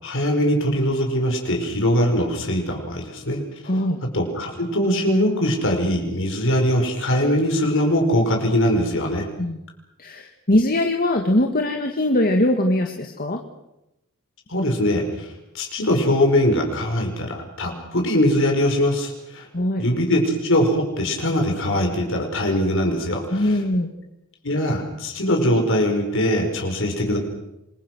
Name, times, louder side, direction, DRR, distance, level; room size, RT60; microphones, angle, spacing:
voice 1, 0.0-3.4 4.1-9.3 14.5-19.5 19.8-23.6 24.4-27.2, equal, 65° left, 3 dB, 5.2 m, -21 dB
voice 2, 3.6-4.0 9.4-9.6 10.0-13.4 19.5-19.8 23.3-23.9, left 1 dB, 45° left, 4 dB, 1.9 m, -21 dB
27.5 x 22.5 x 6.3 m, 0.89 s
head